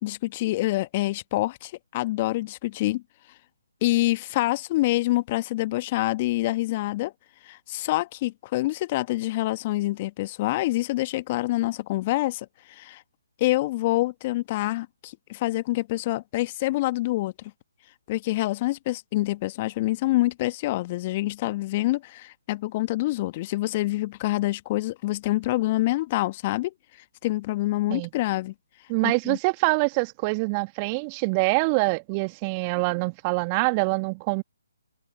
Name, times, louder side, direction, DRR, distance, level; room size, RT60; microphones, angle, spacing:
voice 1, 0.0-3.0 3.8-7.1 7.4-13.0 13.4-17.3 18.1-26.7 27.2-28.5 29.0-29.4, left 18 dB, 30° left, 1.3 m, -26 dB
voice 2, 28.9-34.4, right 30 dB, 25° right, 1.5 m, -25 dB
figure-of-eight pair, 140°, 0 cm